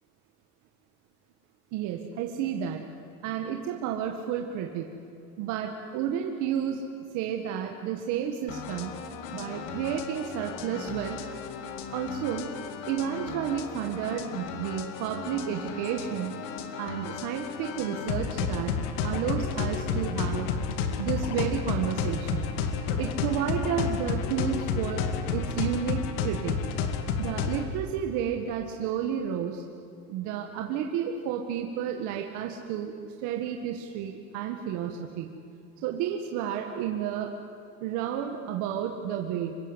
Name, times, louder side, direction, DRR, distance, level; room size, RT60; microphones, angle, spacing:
voice 1, 1.7-2.8 3.2-4.9 5.4-6.8 7.1-9.0 9.3-11.2 11.9-12.5 12.9-16.4 16.8-18.7 19.0-20.5 21.0-22.5 23.0-26.6 27.2-29.6 30.1-32.9 33.2-35.3 35.8-37.3 37.8-39.5, right 9 dB, 60° right, 3 dB, 1.9 m, -31 dB
sound 1, 8.5-27.7, left 6 dB, 70° left, 2.3 m, -32 dB
26.0 x 22.5 x 8.2 m, 2.6 s
cardioid pair, 170°, 34 cm